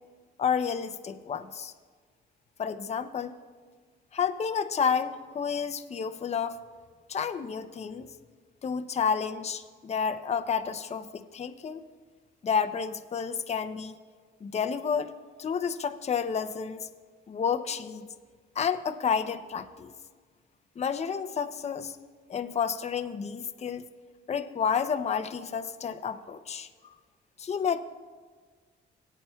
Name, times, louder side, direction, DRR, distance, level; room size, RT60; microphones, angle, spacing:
voice 1, 0.4-1.7 2.6-3.3 4.1-6.6 7.1-8.1 8.6-11.8 12.4-13.9 14.4-15.1 15.4-16.9 17.3-18.1 18.6-19.9 20.8-21.9 22.3-23.8 24.3-26.9 27.4-27.8, left 6 dB, 35° left, 8 dB, 0.6 m, -30 dB
18.5 x 9.2 x 2.3 m, 1.6 s
cardioid pair, 90°, 20 cm